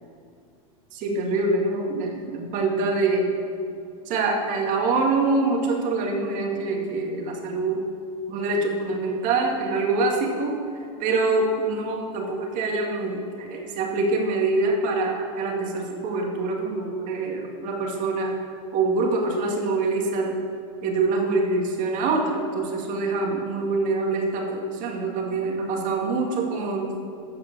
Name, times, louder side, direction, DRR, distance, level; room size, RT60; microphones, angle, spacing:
voice 1, 0.9-3.3 4.1-7.8 8.3-10.6 11.0-18.4 18.7-20.4 20.8-26.9, right 3 dB, 45° right, 1 dB, 2.1 m, -25 dB
13.5 x 4.9 x 7.3 m, 2.4 s
supercardioid pair, 130°, 18 cm